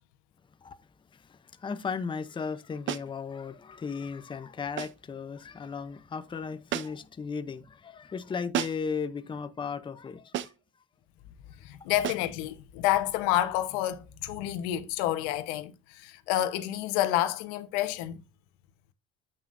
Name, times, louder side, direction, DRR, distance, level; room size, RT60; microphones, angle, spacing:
voice 1, 1.1-10.5, left 5 dB, 15° left, 0.7 m, -36 dB
sound 1, 2.9-3.2 4.8-5.1 6.7-7.1 8.5-9.0 10.3-10.7 12.0-12.4, right 11 dB, 40° right, 0.7 m, -34 dB
voice 2, 11.6-18.2, left 13 dB, 85° left, 1.2 m, -29 dB
9.2 x 8.2 x 2.6 m
cardioid pair, 130°, 29 cm